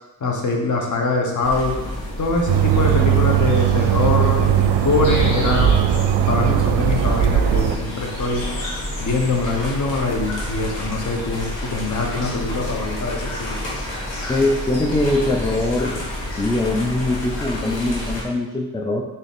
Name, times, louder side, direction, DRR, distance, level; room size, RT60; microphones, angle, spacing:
voice 1, 0.2-1.8 2.2-5.7 6.3-8.4 9.0-13.6, left 3 dB, 45° left, 1 dB, 0.9 m, -23 dB
sound 1, 1.4-18.2, left 1 dB, 80° left, 1.2 m, -29 dB
sound 2, 2.5-7.8, right 9 dB, 70° right, 0.5 m, -18 dB
voice 2, 14.3-16.0 16.3-19.0, left 2 dB, 10° left, -1 dB, 0.4 m, -22 dB
3.8 x 2.8 x 3.5 m, 1.0 s
cardioid pair, 55°, 44 cm